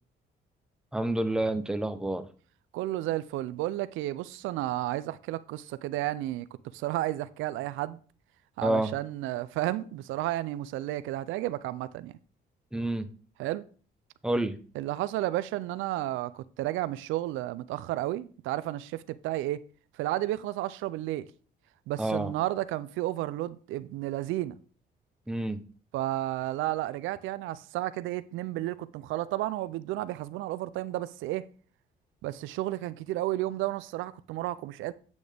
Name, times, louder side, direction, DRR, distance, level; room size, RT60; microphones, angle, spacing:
voice 1, 0.9-2.2 8.6-8.9 12.7-13.1 14.2-14.6 22.0-22.3 25.3-25.6, right 1 dB, 5° right, 0.8 m, -28 dB
voice 2, 2.7-6.5 6.7-8.0 8.6-12.1 13.4-13.6 14.7-19.6 19.9-21.3 21.9-24.6 25.9-31.5 32.2-34.9, right 15 dB, 90° right, 0.4 m, -32 dB
8.5 x 6.2 x 3.4 m
cardioid pair, 85°, 20 cm